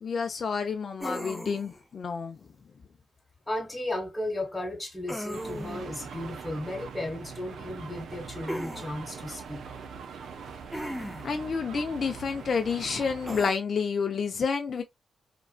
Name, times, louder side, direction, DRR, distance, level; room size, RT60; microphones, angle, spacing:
voice 1, 0.0-2.4 11.2-14.8, left 5 dB, 60° left, 0.4 m, -29 dB
sound 1, 1.0-1.8 5.1-5.9 8.5-8.9 10.7-11.4 13.3-13.5, equal, ahead, 0.5 m, -36 dB
voice 2, 3.5-9.6, left 1 dB, 20° left, 1.3 m, -35 dB
sound 2, 5.3-13.4, right 6 dB, 80° right, 0.4 m, -42 dB
2.4 x 2.2 x 2.3 m
cardioid pair, 60°, 0 cm